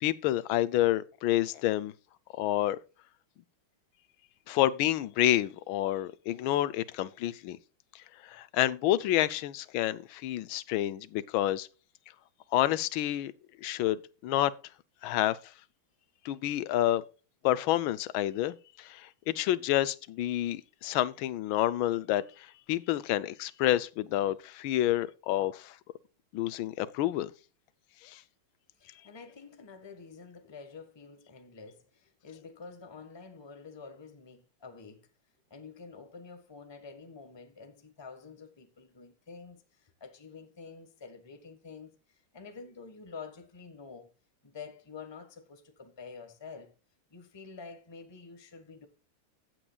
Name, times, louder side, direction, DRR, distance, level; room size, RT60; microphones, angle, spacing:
voice 1, 0.0-1.9 2.4-2.8 4.5-7.6 8.2-11.7 12.5-13.3 13.6-14.5 15.0-15.4 16.2-17.0 17.4-25.7 26.3-27.3 28.0-28.2, left 14 dB, 75° left, 1.4 m, -29 dB
voice 2, 28.8-35.1 35.5-44.1 44.4-46.7 47.1-48.9, left 5 dB, 15° left, 1.1 m, -48 dB
15.5 x 7.9 x 2.3 m
omnidirectional pair, 2.3 m